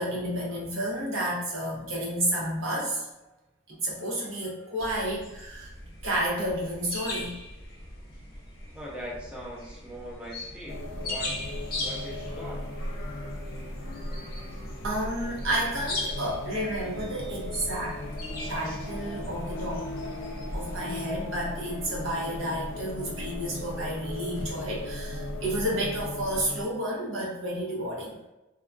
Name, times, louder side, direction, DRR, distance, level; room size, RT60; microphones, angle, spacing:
voice 1, 0.0-3.1 3.7-5.7 6.0-7.3 14.8-18.0 18.5-19.8 20.5-28.2, right 1 dB, 85° right, -4 dB, 0.9 m, -31 dB
sound 1, 4.8-20.8, left 2 dB, 50° left, 0.6 m, -40 dB
voice 2, 8.7-11.4 11.8-12.6, right 1 dB, 5° right, -4 dB, 0.4 m, -41 dB
sound 2, 10.7-26.6, left 1 dB, 90° left, 0.4 m, -37 dB
2.8 x 2.2 x 2.5 m, 0.97 s
head